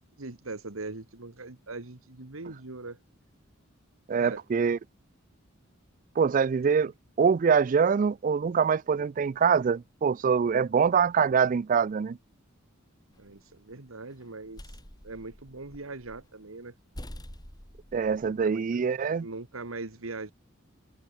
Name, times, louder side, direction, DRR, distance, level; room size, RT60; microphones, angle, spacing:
voice 1, 0.2-3.0 4.1-4.4 13.2-14.6 15.0-16.7 18.2-18.8 19.2-20.3, right 3 dB, 85° right, 1.7 m, -41 dB
voice 2, 4.1-4.8 6.2-6.9 7.2-12.2 17.9-19.3, right 6 dB, 40° right, 0.3 m, -24 dB
sound 1, 13.1-13.7 14.2-16.3 16.6-16.7 16.9-18.5, equal, 20° left, 4.3 m, -46 dB
head